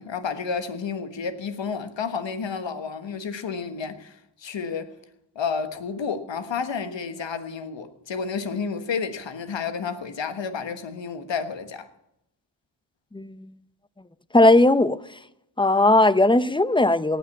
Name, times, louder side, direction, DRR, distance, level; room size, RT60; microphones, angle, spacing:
voice 1, 0.0-4.9 5.3-11.9, left 5 dB, 75° left, 1.4 m, -31 dB
voice 2, 14.3-15.0 15.6-17.2, left 2 dB, 10° left, 0.7 m, -17 dB
18.0 x 6.0 x 8.1 m
cardioid pair, 65°, 44 cm